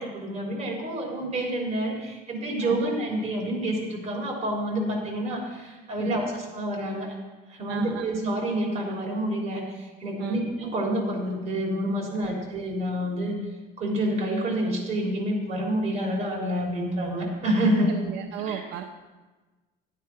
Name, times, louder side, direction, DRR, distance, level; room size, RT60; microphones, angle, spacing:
voice 1, 0.0-7.1 7.5-13.4 13.8-17.9 18.4-18.6, right 1 dB, 40° right, -1 dB, 3.4 m, -28 dB
voice 2, 7.7-8.2 10.2-10.4 12.1-12.3 17.9-18.8, right 10 dB, 75° right, 4 dB, 0.8 m, -34 dB
12.5 x 9.3 x 4.6 m, 1.2 s
cardioid pair, 145°, 18 cm